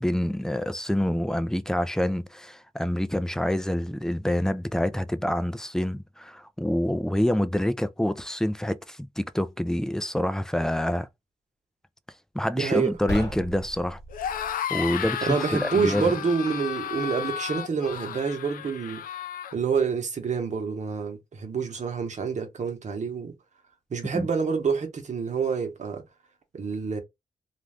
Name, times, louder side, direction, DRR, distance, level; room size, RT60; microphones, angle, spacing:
voice 1, 0.0-11.1 12.3-14.0 14.3-14.4 14.7-16.1 24.1-24.3, left 1 dB, 5° left, 0.3 m, -27 dB
voice 2, 12.5-12.9 15.2-19.0 19.5-23.3 23.9-26.0 26.5-27.0, right 5 dB, 55° right, 0.9 m, -27 dB
sound 1, 13.0-14.5, left 1 dB, 25° left, 1.3 m, -35 dB
sound 2, 14.1-19.5, left 9 dB, 80° left, 0.4 m, -33 dB
2.5 x 2.3 x 3.2 m
cardioid pair, 70°, 14 cm